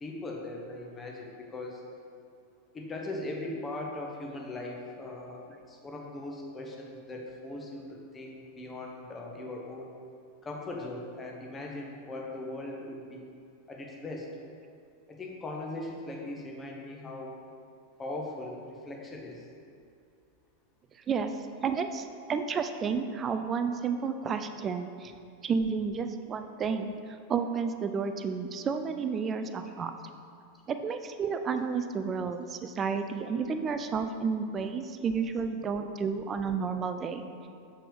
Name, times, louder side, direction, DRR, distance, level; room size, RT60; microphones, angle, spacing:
voice 1, 0.0-1.8 2.7-5.4 5.7-9.9 10.4-13.3 13.7-14.3 15.1-17.4 18.0-19.5, left 2 dB, 15° left, -1 dB, 1.0 m, -39 dB
voice 2, 21.6-25.1 25.4-29.9 30.7-37.2, right 5 dB, 25° right, 8 dB, 0.4 m, -31 dB
6.9 x 5.8 x 3.4 m, 2.4 s
figure-of-eight pair, 90°, 0 cm